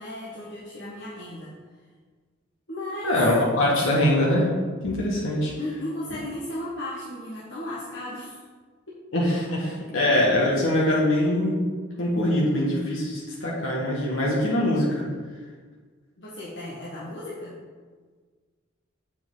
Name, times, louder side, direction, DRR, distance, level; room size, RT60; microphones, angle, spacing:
voice 1, 0.0-1.5 2.7-3.1 5.6-8.4 8.9-9.0 16.2-17.6, left 1 dB, 60° left, -8 dB, 1.4 m, -35 dB
voice 2, 3.0-4.5 4.8-5.5 9.1-11.6 12.0-15.1, left 1 dB, 80° left, -5 dB, 1.6 m, -23 dB
7.5 x 6.0 x 3.9 m, 1.5 s
head